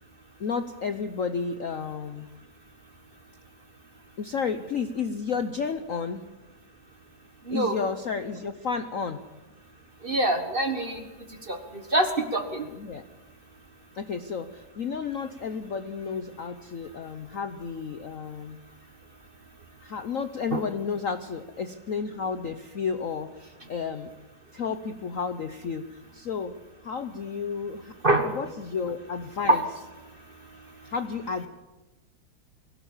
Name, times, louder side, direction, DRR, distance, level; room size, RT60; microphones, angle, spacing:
voice 1, 0.4-2.3 4.2-6.3 7.5-9.2 12.7-13.0 13.9-18.6 19.8-24.1 24.5-29.6 30.8-31.5, left 5 dB, 55° left, 9 dB, 0.9 m, -32 dB
voice 2, 10.0-11.0 11.5-12.6 20.5-20.6 28.0-28.3 29.5-29.6, right 1 dB, 30° right, 6 dB, 1.4 m, -24 dB
22.5 x 17.0 x 7.3 m, 1.1 s
omnidirectional pair, 2.3 m